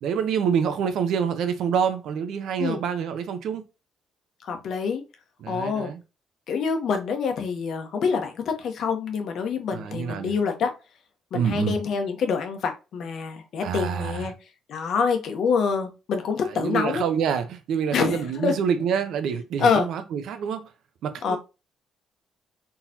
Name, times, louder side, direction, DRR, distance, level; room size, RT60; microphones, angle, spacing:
voice 1, 0.0-3.6 5.4-6.0 9.7-10.3 11.3-11.7 13.6-14.3 16.5-20.7 21.0-21.4, right 7 dB, 65° right, 0.9 m, -27 dB
voice 2, 4.4-5.0 5.5-5.9 6.5-10.7 11.3-14.3 14.7-17.1 17.9-18.5 19.6-19.9 21.2-21.4, left 5 dB, 55° left, 1.1 m, -26 dB
4.3 x 3.9 x 2.8 m
cardioid pair, 160°, 0 cm